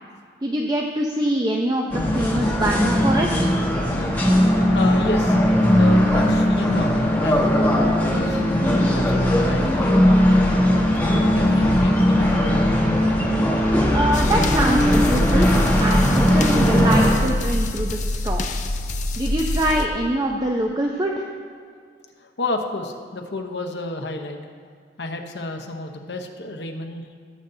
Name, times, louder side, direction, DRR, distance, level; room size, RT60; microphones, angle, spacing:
voice 1, 0.4-3.5 13.9-15.5 15.8-18.7 19.2-21.3, right 1 dB, 25° right, 1 dB, 0.6 m, -24 dB
sound 1, 1.9-17.2, equal, 10° left, 1.5 m, -18 dB
voice 2, 4.7-5.4 5.7-8.5 8.9-10.6 11.0-12.8 22.2-24.4 25.0-27.1, left 2 dB, 70° left, 4 dB, 1.0 m, -31 dB
sound 2, 14.1-19.9, left 1 dB, 45° left, 0.6 m, -25 dB
17.5 x 7.9 x 2.7 m, 2.1 s
head